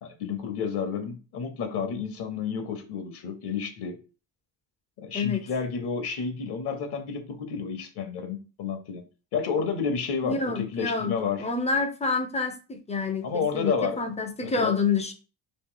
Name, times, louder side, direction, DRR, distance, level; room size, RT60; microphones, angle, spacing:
voice 1, 0.0-4.0 5.0-9.0 9.3-11.5 13.2-14.0 14.4-14.8, left 6 dB, 55° left, 0.8 m, -30 dB
voice 2, 10.2-15.1, left 4 dB, 15° left, 0.4 m, -28 dB
3.0 x 2.6 x 3.7 m
cardioid pair, 110°, 48 cm